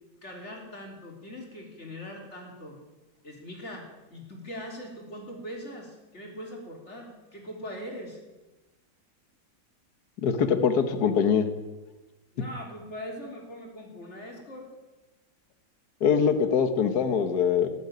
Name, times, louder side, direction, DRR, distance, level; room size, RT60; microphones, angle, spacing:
voice 1, 0.2-2.8 3.2-8.2 12.3-14.7, equal, 35° left, 0 dB, 3.7 m, -41 dB
voice 2, 10.2-11.5 16.0-17.7, left 6 dB, 60° left, 9 dB, 1.7 m, -23 dB
18.5 x 8.0 x 9.4 m, 1.1 s
omnidirectional pair, 2.0 m